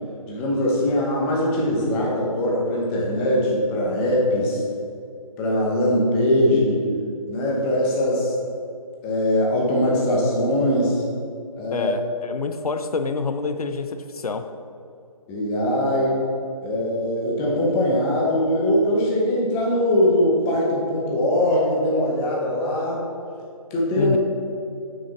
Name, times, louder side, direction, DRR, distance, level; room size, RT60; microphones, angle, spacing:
voice 1, 0.3-4.6 5.4-6.9 7.3-8.3 9.0-11.0 11.6-11.9 15.3-16.1 16.6-23.0 23.7-24.2, left 1 dB, 15° left, -3 dB, 0.9 m, -21 dB
voice 2, 11.7-14.5 24.0-24.2, left 4 dB, 85° left, 8 dB, 0.6 m, -27 dB
6.8 x 6.3 x 4.1 m, 2.5 s
figure-of-eight pair, 160°, 19 cm